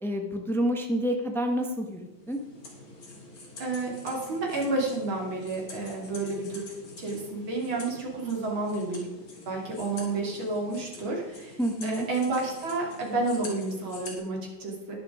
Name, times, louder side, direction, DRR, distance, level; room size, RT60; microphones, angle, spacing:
voice 1, 0.0-2.4 11.6-12.1, equal, ahead, 3 dB, 0.9 m, -28 dB
sound 1, 1.8-14.1, left 2 dB, 70° left, 3.7 m, -46 dB
voice 2, 3.6-6.7 7.0-9.1 9.5-15.0, right 3 dB, 70° right, -1 dB, 3.6 m, -30 dB
11.5 x 10.5 x 5.0 m, 1.1 s
omnidirectional pair, 2.3 m